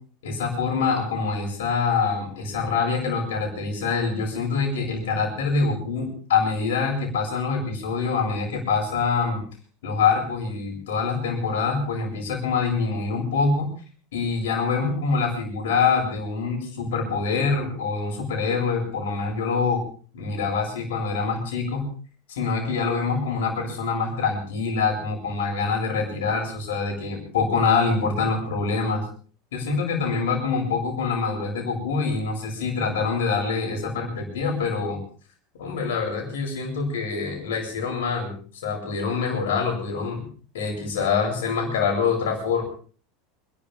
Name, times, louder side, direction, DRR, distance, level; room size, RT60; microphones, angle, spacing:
voice 1, 0.2-9.4 9.8-13.7 14.1-19.8 20.1-21.9 22.3-29.0 29.5-35.0 35.6-38.3 38.6-40.2 40.5-42.6, left 5 dB, 80° left, 1 dB, 7.8 m, -25 dB
29.0 x 12.5 x 3.6 m, 0.42 s
hypercardioid pair, 90°, 0 cm